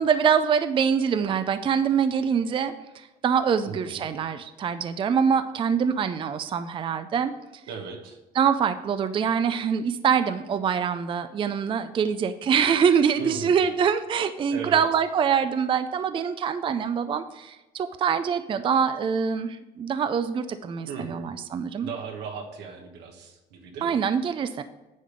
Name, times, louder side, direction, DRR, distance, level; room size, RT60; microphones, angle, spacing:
voice 1, 0.0-7.3 8.4-21.9 23.8-24.6, right 7 dB, 30° right, 11 dB, 0.4 m, -24 dB
voice 2, 3.7-4.0 7.7-8.2 13.2-13.6 14.5-14.8 20.9-21.3 21.8-24.0, right 6 dB, 85° right, 3 dB, 1.3 m, -37 dB
9.3 x 3.4 x 6.5 m, 1.0 s
cardioid pair, 110°, 17 cm